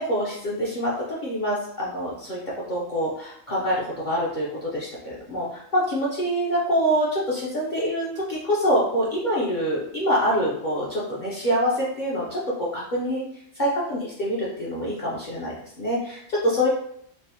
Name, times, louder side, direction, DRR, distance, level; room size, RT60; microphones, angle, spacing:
voice 1, 0.0-2.4 2.7-13.2 13.6-16.7, equal, 50° left, -6 dB, 0.7 m, -25 dB
3.3 x 2.5 x 2.8 m, 0.68 s
omnidirectional pair, 1.2 m